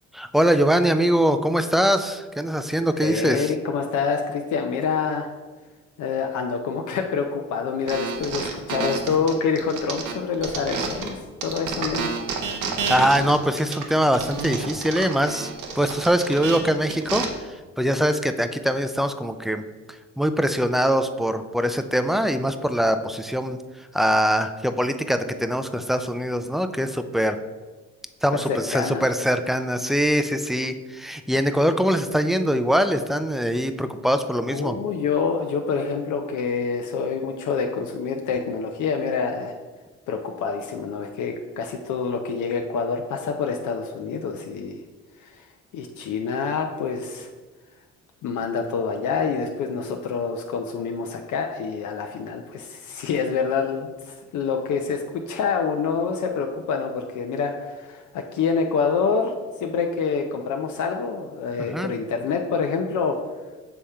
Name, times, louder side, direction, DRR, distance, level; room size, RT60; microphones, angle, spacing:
voice 1, 0.1-3.5 12.9-15.5 15.8-19.6 20.2-27.4 28.2-34.8 61.6-61.9, equal, ahead, 9 dB, 0.3 m, -23 dB
voice 2, 3.0-5.3 6.0-12.1 13.2-13.3 28.5-29.0 34.5-39.5 40.1-44.8 45.2-45.5 45.7-47.3 48.2-59.3 59.6-63.2, left 5 dB, 75° left, 3 dB, 0.6 m, -26 dB
sound 1, 7.9-11.1 11.4-17.2, right 5 dB, 85° right, 0.9 m, -30 dB
7.0 x 3.6 x 4.3 m, 1.3 s
cardioid pair, 90°, 30 cm